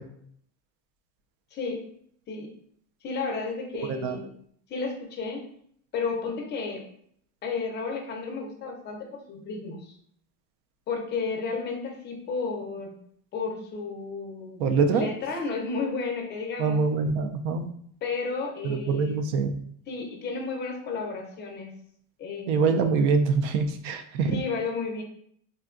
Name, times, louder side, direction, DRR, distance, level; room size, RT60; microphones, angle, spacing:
voice 1, 1.5-1.8 2.3-2.5 3.0-4.3 4.7-5.4 5.9-6.9 7.4-9.9 10.9-12.9 13.3-16.8 18.0-19.2 19.9-21.7 22.2-22.8 24.3-25.0, left 4 dB, 25° left, 2 dB, 0.5 m, -32 dB
voice 2, 3.9-4.2 14.6-15.1 16.6-17.7 18.6-19.6 22.5-24.3, right 4 dB, 60° right, 8 dB, 0.5 m, -24 dB
3.7 x 2.2 x 2.4 m, 0.65 s
cardioid pair, 150°, 40 cm